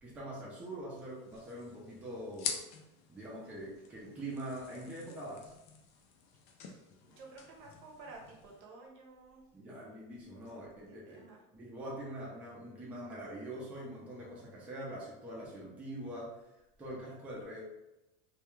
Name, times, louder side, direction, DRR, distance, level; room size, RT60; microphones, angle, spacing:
voice 1, 0.0-2.6 3.1-5.5 9.5-11.3 11.5-16.5 16.8-17.6, right 1 dB, 10° right, -5 dB, 0.4 m, -44 dB
sound 1, 1.0-8.6, left 6 dB, 55° left, 0.4 m, -46 dB
voice 2, 7.0-9.4 10.9-11.4, right 3 dB, 50° right, -1 dB, 0.7 m, -52 dB
2.2 x 2.2 x 3.0 m, 0.94 s
cardioid pair, 170°, 16 cm